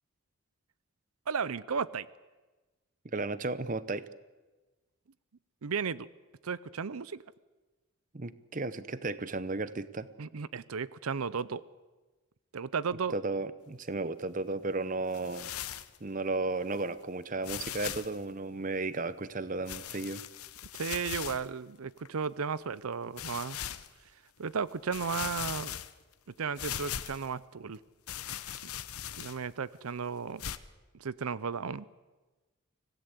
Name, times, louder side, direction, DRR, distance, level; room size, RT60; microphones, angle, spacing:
voice 1, 1.3-2.1 5.6-6.1 6.4-7.2 10.2-11.6 12.5-13.1 20.7-23.6 24.4-25.7 26.4-27.8 28.6-28.7 29.2-30.4 31.0-31.9, right 6 dB, 80° right, 18 dB, 0.6 m, -34 dB
voice 2, 3.0-4.1 8.1-10.1 13.1-15.5 16.0-20.2, right 3 dB, 35° right, 15 dB, 0.7 m, -34 dB
sound 1, 15.1-16.0 16.7-16.8 17.4-18.2 19.7-21.5 22.1-22.2 23.2-23.9 24.5-24.6 24.9-26.1 26.6-27.3 28.1-29.5 30.4-30.6, left 10 dB, 85° left, 0.9 m, -39 dB
25.5 x 17.0 x 8.3 m, 1.2 s
head